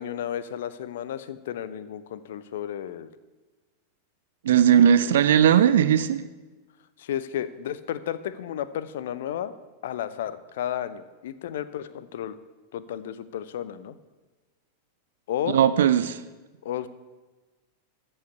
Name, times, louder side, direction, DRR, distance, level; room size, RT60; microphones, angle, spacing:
voice 1, 0.0-3.1 5.0-5.2 7.0-9.5 9.8-12.4 12.7-13.9 15.3-15.6 16.6-16.9, left 10 dB, 55° left, 14 dB, 0.7 m, -33 dB
voice 2, 4.4-6.2 15.5-16.2, right 9 dB, 60° right, 14 dB, 0.5 m, -18 dB
14.0 x 5.6 x 8.4 m, 1.2 s
figure-of-eight pair, 90°, 0 cm